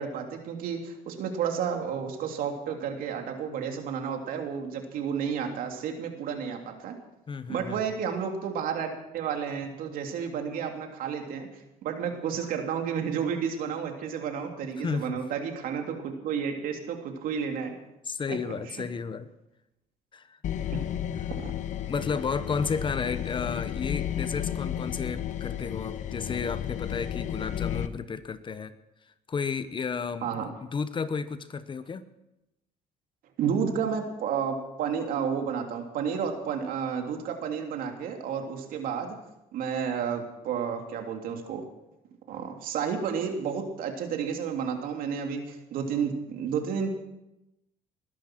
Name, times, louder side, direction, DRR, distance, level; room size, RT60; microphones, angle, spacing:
voice 1, 0.0-6.9 7.5-11.5 11.8-17.7 18.3-18.8 20.7-20.9 21.3-21.5 30.2-30.5 33.4-39.2 39.5-41.6 42.3-46.9, right 7 dB, 70° right, 4 dB, 3.1 m, -31 dB
voice 2, 7.3-7.9 14.8-15.2 18.1-19.3 20.1-20.2 21.1-21.3 21.9-28.7 29.3-32.0, left 5 dB, 35° left, 13 dB, 1.1 m, -32 dB
sound 1, 20.4-27.9, left 10 dB, 55° left, 1.1 m, -32 dB
20.5 x 11.5 x 6.1 m, 0.90 s
cardioid pair, 100°, 15 cm